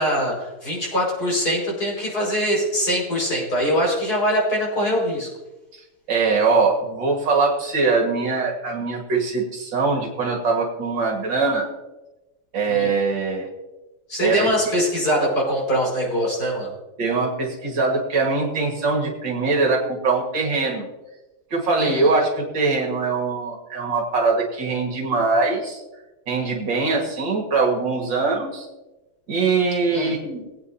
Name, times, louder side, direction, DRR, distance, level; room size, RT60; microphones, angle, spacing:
voice 1, 0.0-5.3 12.7-12.9 14.1-16.7 21.8-22.1 29.9-30.1, equal, 45° left, -4 dB, 5.7 m, -23 dB
voice 2, 6.1-11.7 12.5-13.5 14.2-14.5 17.0-20.9 21.5-25.8 26.3-28.7 29.3-30.4, right 4 dB, 65° right, 0 dB, 2.4 m, -22 dB
21.0 x 8.9 x 2.8 m, 1.1 s
omnidirectional pair, 2.3 m